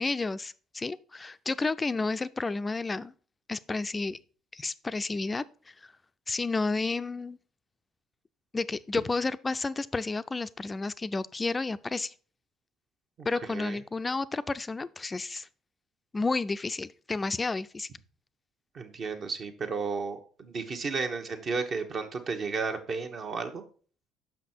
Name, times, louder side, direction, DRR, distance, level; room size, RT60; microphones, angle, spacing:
voice 1, 0.0-3.1 3.5-4.2 4.5-5.7 6.3-7.4 8.5-12.1 13.2-15.5 16.1-17.9, left 3 dB, 25° left, 0.4 m, -31 dB
voice 2, 13.2-13.8 18.7-23.6, right 4 dB, 50° right, 1.1 m, -33 dB
5.9 x 5.6 x 4.4 m
hypercardioid pair, 65°, 0 cm